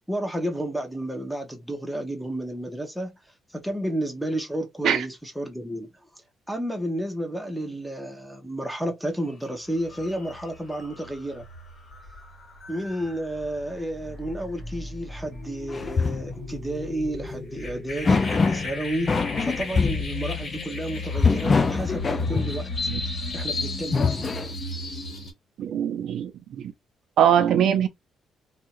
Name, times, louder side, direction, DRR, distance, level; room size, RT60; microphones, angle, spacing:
voice 1, 0.1-3.2 3.5-5.9 6.5-11.4 12.7-19.1 19.4-22.7 23.3-24.3, right 1 dB, ahead, 1.0 m, -31 dB
sound 1, 9.3-9.5 9.8-25.3, left 3 dB, 50° left, 1.6 m, -34 dB
sound 2, 15.7-16.3 17.3-17.4 18.0-18.7 19.1-20.1 21.2-22.6 23.7-24.5, left 4 dB, 35° left, 0.4 m, -23 dB
voice 2, 25.6-26.6 27.2-27.9, right 9 dB, 75° right, 0.5 m, -22 dB
2.6 x 2.4 x 3.0 m
cardioid pair, 90°, 0 cm